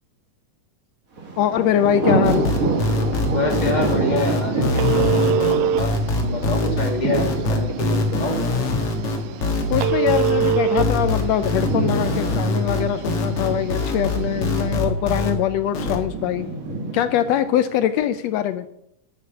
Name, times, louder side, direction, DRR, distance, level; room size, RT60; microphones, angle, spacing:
Thunder, 1.2-18.1, right 3 dB, 35° right, 1.7 m, -28 dB
voice 1, 1.4-2.5 9.7-16.5 16.9-18.7, left 11 dB, 85° left, 11 dB, 1.5 m, -22 dB
sound 1, 2.2-15.3 15.7-16.0, left 2 dB, 50° left, 2.4 m, -23 dB
Telephone, 2.3-14.8, right 10 dB, 80° right, 2.0 m, -28 dB
voice 2, 3.3-8.3, left 2 dB, 15° left, 2 dB, 1.9 m, -26 dB
11.0 x 8.4 x 5.9 m, 0.76 s
omnidirectional pair, 3.6 m